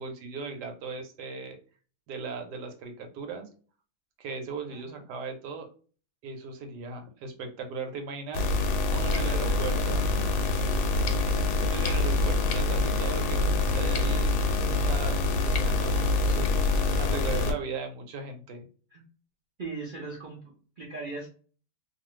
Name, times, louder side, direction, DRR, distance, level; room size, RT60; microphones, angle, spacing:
voice 1, 0.0-1.6 2.1-3.5 4.2-5.7 6.2-8.5 8.9-10.3 10.9-11.3 11.6-14.3 14.8-16.5 17.0-18.7, right 4 dB, 85° right, 5 dB, 1.2 m, -37 dB
sound 1, 8.3-17.5, left 2 dB, 75° left, 1.1 m, -25 dB
voice 2, 9.1-9.9 18.9-19.0 19.6-21.3, right 3 dB, 60° right, -3 dB, 0.5 m, -40 dB
2.6 x 2.4 x 3.0 m, 0.39 s
omnidirectional pair, 1.8 m